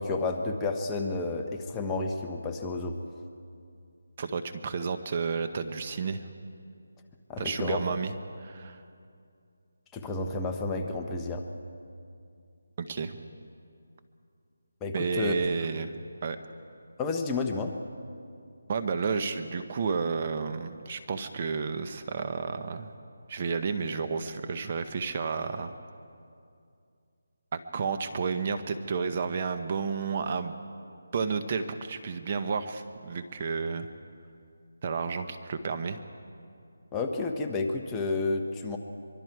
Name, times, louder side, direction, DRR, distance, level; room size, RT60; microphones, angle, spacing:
voice 1, 0.0-3.0 7.3-7.8 9.9-11.4 14.8-15.3 17.0-17.7 36.9-38.8, left 3 dB, 10° left, 2 dB, 1.0 m, -31 dB
voice 2, 4.2-6.3 7.4-8.1 8.4-8.8 12.8-13.2 14.9-15.9 16.2-16.4 18.7-22.9 23.3-25.7 27.5-30.5 31.1-33.9 34.8-36.0, right 5 dB, 35° right, 8 dB, 1.0 m, -31 dB
24.0 x 23.5 x 4.8 m, 2.4 s
figure-of-eight pair, 165°, 0 cm